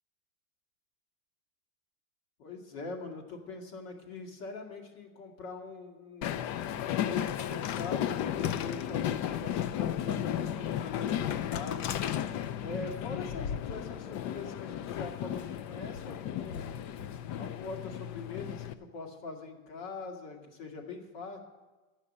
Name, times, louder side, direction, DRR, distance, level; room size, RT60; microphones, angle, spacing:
voice 1, 2.4-6.3 6.9-11.9 12.6-16.7 17.4-21.4, left 4 dB, 70° left, 2 dB, 2.3 m, -42 dB
Train, 6.2-18.7, left 10 dB, 45° left, 0.5 m, -34 dB
11.5 x 5.7 x 8.5 m, 1.2 s
cardioid pair, 145°, 40 cm